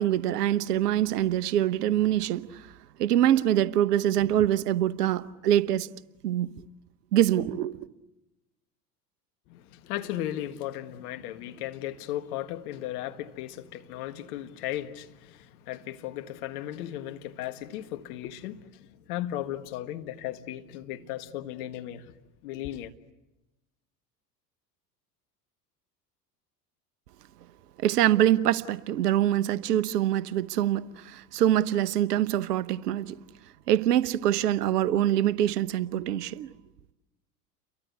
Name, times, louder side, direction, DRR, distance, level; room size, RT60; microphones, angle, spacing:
voice 1, 0.0-2.7 3.0-5.9 6.2-6.5 7.1-7.9 27.8-33.2 33.7-36.5, right 12 dB, 65° right, 1.1 m, -24 dB
voice 2, 9.5-22.1 22.4-22.9, left 13 dB, 60° left, 1.7 m, -36 dB
30.0 x 23.0 x 8.2 m
figure-of-eight pair, 80°, 50 cm